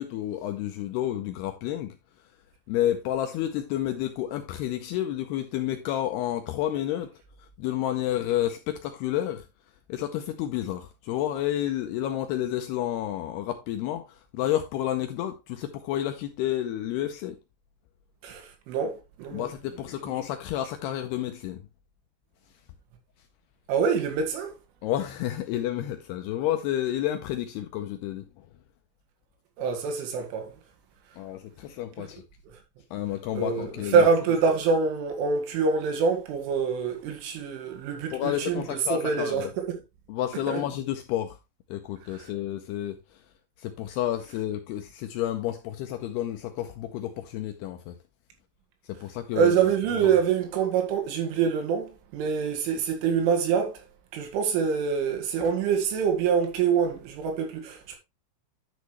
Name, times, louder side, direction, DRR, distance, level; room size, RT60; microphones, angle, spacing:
voice 1, 0.0-1.9 2.7-7.1 7.6-9.4 9.9-17.4 19.3-21.6 24.8-28.3 31.2-32.2 32.9-34.1 38.1-39.5 40.1-41.4 41.7-43.0 43.6-48.0 48.9-49.5 50.0-50.1, left 12 dB, 90° left, 2.3 m, -30 dB
voice 2, 18.2-19.5 20.0-20.1 23.7-24.5 29.6-30.5 32.0-32.1 33.3-39.8 40.5-40.6 42.2-42.3 49.3-53.8 54.1-58.0, right 6 dB, 90° right, 4.4 m, -25 dB
10.5 x 6.4 x 3.1 m
omnidirectional pair, 5.4 m